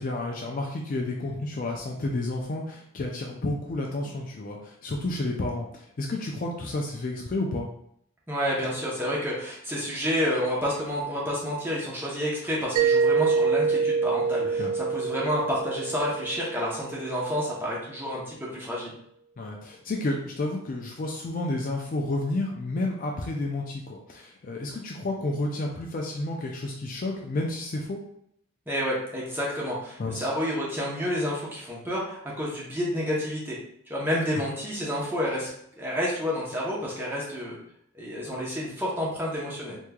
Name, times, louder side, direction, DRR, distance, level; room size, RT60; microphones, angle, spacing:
voice 1, 0.0-7.7 14.6-14.7 19.4-28.0 30.0-30.3, left 2 dB, 40° left, 1 dB, 0.3 m, -31 dB
voice 2, 8.3-18.9 28.7-33.6 33.9-35.5 35.8-37.6 37.9-39.8, equal, 10° right, -5 dB, 0.8 m, -29 dB
Mallet percussion, 12.8-17.4, right 5 dB, 80° right, 0.4 m, -26 dB
3.4 x 3.0 x 2.3 m, 0.71 s
head